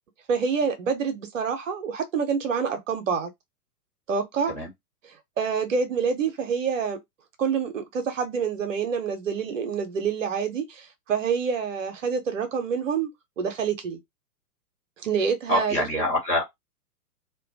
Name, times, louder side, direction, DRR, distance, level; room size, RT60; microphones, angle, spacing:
voice 1, 0.3-3.3 4.1-4.5 5.4-7.0 7.4-13.1 13.4-14.0 15.0-16.0, right 6 dB, 50° right, 0.7 m, -27 dB
voice 2, 15.5-16.4, left 1 dB, 15° left, 0.6 m, -25 dB
2.2 x 2.2 x 2.6 m
figure-of-eight pair, 110°, 49 cm